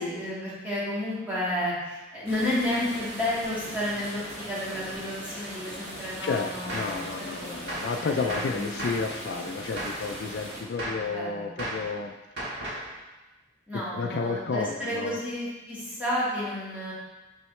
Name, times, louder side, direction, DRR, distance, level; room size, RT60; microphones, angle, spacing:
voice 1, 0.0-7.1 7.4-7.5 8.0-8.9 10.9-12.0 13.7-16.9, left 1 dB, 10° right, -9 dB, 1.8 m, -32 dB
sound 1, 2.2-10.6, equal, 50° right, 2.0 m, -40 dB
voice 2, 6.2-12.1 13.9-15.2, left 4 dB, 65° left, 4 dB, 0.3 m, -31 dB
Gunshot gunfire, 6.7-7.0 7.7-8.0 8.3-9.1 9.8-10.1 10.8-11.1 11.6-11.9 12.4-12.9, right 1 dB, 75° right, 1.8 m, -34 dB
6.0 x 5.5 x 3.2 m, 1.1 s
head